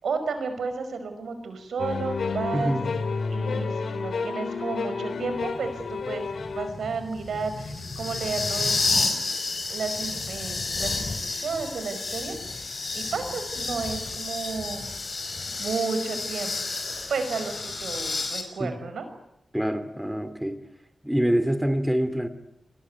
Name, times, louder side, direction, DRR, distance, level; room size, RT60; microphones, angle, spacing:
voice 1, 0.0-2.8 3.3-6.2 6.5-8.7 9.7-14.9 15.6-16.5 17.1-19.0, right 4 dB, 90° right, 9 dB, 5.2 m, -32 dB
sound 1, 1.8-6.8, left 4 dB, 75° left, 3.2 m, -30 dB
voice 2, 2.5-2.9 18.6-18.8 19.5-20.6 21.0-22.3, equal, 5° right, 10 dB, 2.6 m, -25 dB
sound 2, 5.3-18.4, left 3 dB, 50° left, 5.9 m, -31 dB
28.5 x 22.0 x 9.5 m, 0.84 s
wide cardioid pair, 85°, 0 cm